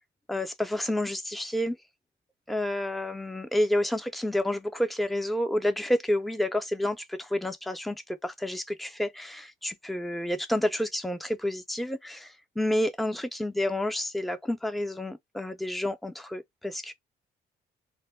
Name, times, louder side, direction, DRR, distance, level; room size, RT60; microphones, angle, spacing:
voice 1, 0.3-1.8 2.5-16.9, left 1 dB, ahead, 0.4 m, -29 dB
2.1 x 2.1 x 3.3 m
cardioid pair, 90°, 20 cm